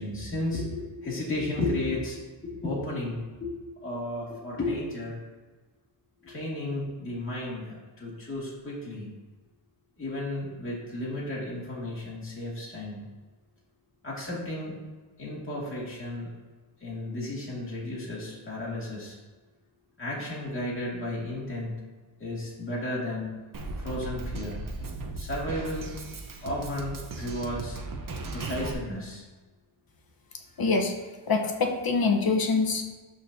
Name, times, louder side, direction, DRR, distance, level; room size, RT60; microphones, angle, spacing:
voice 1, 0.0-2.2 2.4-3.5 3.8-5.2 6.2-9.1 10.0-13.0 14.0-14.8 15.2-16.3 16.8-19.2 20.0-21.7 22.2-23.3 23.8-25.9 26.4-27.8 28.3-29.2, left 1 dB, 25° left, -6 dB, 2.3 m, -33 dB
Drum kit, 23.5-28.7, right 2 dB, 45° right, 0.9 m, -37 dB
voice 2, 30.6-30.9 31.3-32.9, left 4 dB, 50° left, 2 dB, 1.1 m, -25 dB
12.5 x 4.2 x 2.8 m, 1.3 s
wide cardioid pair, 120°, 48 cm